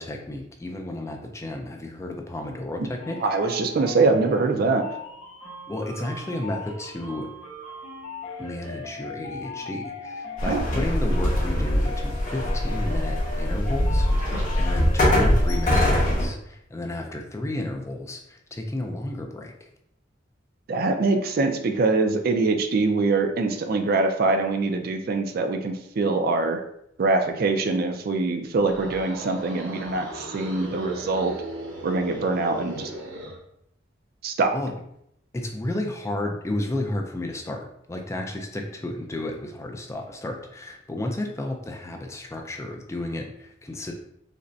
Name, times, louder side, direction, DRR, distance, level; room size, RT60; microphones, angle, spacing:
voice 1, 0.0-3.2 5.7-7.3 8.4-19.5 34.5-34.8 35.3-43.9, left 1 dB, 15° left, 3 dB, 0.3 m, -32 dB
sound 1, 3.0-15.7, left 3 dB, 85° left, 1.3 m, -39 dB
voice 2, 3.2-4.8 10.5-10.6 20.7-26.6 27.0-31.3 31.8-32.9 34.2-34.6, right 3 dB, 50° right, 5 dB, 0.4 m, -23 dB
sound 2, 10.4-16.3, left 1 dB, 40° left, 1.5 m, -22 dB
sound 3, 28.5-33.4, right 1 dB, 80° right, 0.9 m, -38 dB
5.1 x 2.1 x 2.6 m, 0.75 s
head